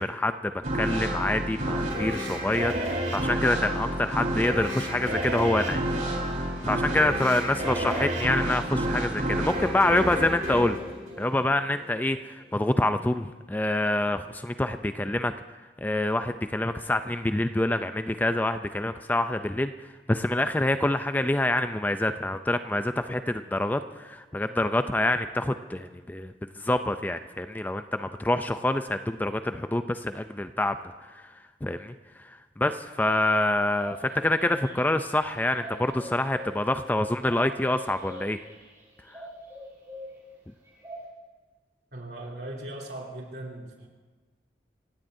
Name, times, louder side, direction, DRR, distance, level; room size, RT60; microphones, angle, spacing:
voice 1, 0.0-5.8 6.3-6.4 6.6-10.8 11.2-15.3 15.8-19.7 20.1-30.9 31.6-31.9 32.2-38.4 39.1-39.2, left 1 dB, 10° left, 9 dB, 0.4 m, -26 dB
sound 1, 0.6-11.8, equal, 45° right, 3.5 m, -29 dB
sound 2, 33.7-41.1, equal, 20° right, 5.7 m, -44 dB
voice 2, 41.9-43.9, right 1 dB, 65° right, -1 dB, 3.0 m, -39 dB
28.0 x 16.0 x 2.7 m, 1.3 s
head